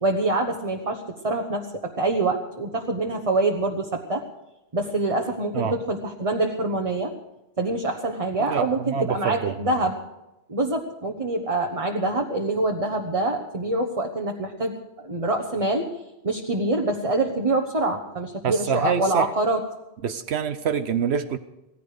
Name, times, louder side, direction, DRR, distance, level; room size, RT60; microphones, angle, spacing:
voice 1, 0.0-4.2 4.7-7.1 7.6-10.0 10.5-15.9 16.2-19.6, right 2 dB, 35° right, 2 dB, 1.2 m, -25 dB
voice 2, 8.4-9.9 18.4-19.3 20.0-21.4, right 7 dB, 80° right, 9 dB, 1.1 m, -26 dB
18.0 x 15.0 x 5.0 m, 0.95 s
omnidirectional pair, 1.1 m